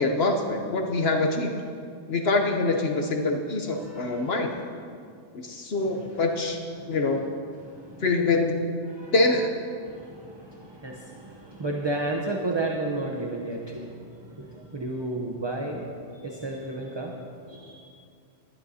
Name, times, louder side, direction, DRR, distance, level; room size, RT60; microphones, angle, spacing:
voice 1, 0.0-1.5 2.1-4.5 5.3-6.6 6.9-7.2 8.0-8.7 9.1-9.5, left 3 dB, 60° left, 3 dB, 1.0 m, -25 dB
voice 2, 3.7-4.4 5.9-6.1 6.8-7.3 7.6-8.1 8.9-9.5 9.8-17.8, right 2 dB, 25° right, 1 dB, 0.7 m, -33 dB
19.5 x 12.0 x 2.8 m, 2.4 s
omnidirectional pair, 1.3 m